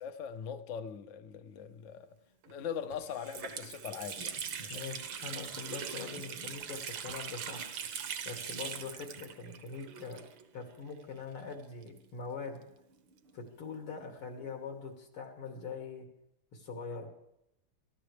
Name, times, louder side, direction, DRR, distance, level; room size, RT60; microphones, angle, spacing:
voice 1, 0.0-2.1 2.5-4.8, left 8 dB, 60° left, 0.7 m, -41 dB
Water tap faucet, 2.4-2.5 2.9-10.6 10.9-11.0 11.8-13.4, right 7 dB, 65° right, 1.8 m, -42 dB
voice 2, 4.7-7.7 8.3-10.2 10.5-12.6 13.3-16.1 16.5-17.1, left 5 dB, 80° left, 3.5 m, -43 dB
26.5 x 13.5 x 3.4 m
omnidirectional pair, 2.4 m